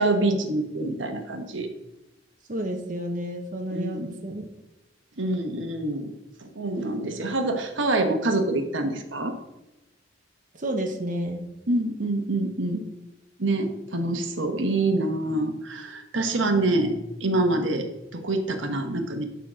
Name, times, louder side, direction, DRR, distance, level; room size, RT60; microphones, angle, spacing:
voice 1, 0.0-1.7 3.7-4.1 5.2-6.1 6.4-9.3 11.7-12.8 13.4-17.9 18.1-19.2, right 2 dB, 85° right, 5 dB, 1.2 m, -26 dB
voice 2, 2.5-4.4 10.6-11.5, right 1 dB, 45° right, 3 dB, 1.0 m, -30 dB
11.5 x 4.2 x 6.3 m, 0.97 s
head